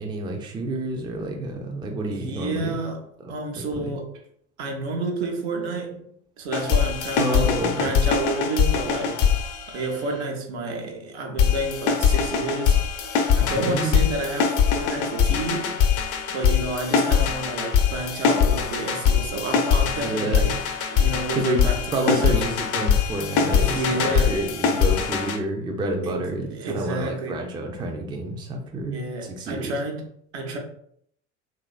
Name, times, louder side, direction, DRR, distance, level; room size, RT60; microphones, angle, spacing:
voice 1, 0.0-2.8 3.2-4.0 7.2-8.0 13.5-14.0 20.0-20.6 21.3-21.7 21.9-29.0 29.4-29.7, right 1 dB, 15° right, 2 dB, 0.4 m, -29 dB
voice 2, 2.1-4.2 4.6-6.1 6.4-15.8 16.3-20.6 20.9-22.4 23.5-24.4 26.0-26.2 26.5-27.5 28.9-30.6, right 2 dB, 65° right, 2 dB, 0.8 m, -30 dB
sound 1, 6.5-10.2 11.4-25.4, left 7 dB, 40° left, 0.5 m, -22 dB
2.9 x 2.5 x 2.3 m, 0.67 s
figure-of-eight pair, 65°, 35 cm